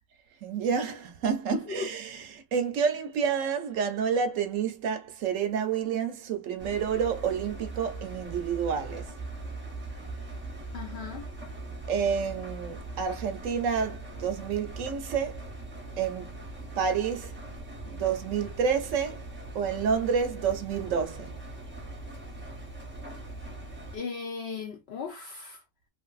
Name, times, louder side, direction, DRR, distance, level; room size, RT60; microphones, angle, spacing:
voice 1, 0.4-9.1 11.9-15.4 16.0-16.3 16.8-17.3 17.9-19.2 19.5-21.3, right 6 dB, 70° right, 0.9 m, -29 dB
voice 2, 1.5-1.9 10.7-11.3 23.9-25.6, left 5 dB, 65° left, 0.7 m, -36 dB
Engine, 6.6-24.0, right 2 dB, 10° right, 0.6 m, -41 dB
3.0 x 2.6 x 2.3 m
omnidirectional pair, 1.5 m